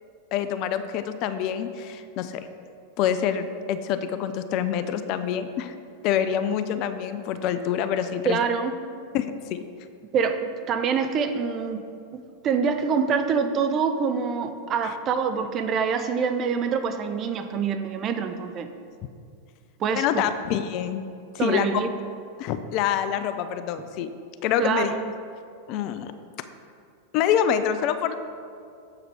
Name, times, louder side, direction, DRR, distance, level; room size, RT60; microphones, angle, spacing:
voice 1, 0.3-2.5 3.0-5.7 6.0-8.4 9.1-9.6 14.8-14.9 19.9-21.0 21.3-21.8 22.4-24.1 24.4-24.9 25.7-26.1 27.1-28.1, left 9 dB, 40° left, 11 dB, 0.3 m, -26 dB
voice 2, 8.3-8.8 10.1-11.9 12.1-18.7 19.8-20.2 21.4-21.9 24.6-25.0, right 6 dB, 30° right, 8 dB, 0.4 m, -25 dB
7.3 x 4.8 x 4.5 m, 2.3 s
figure-of-eight pair, 90°, 0 cm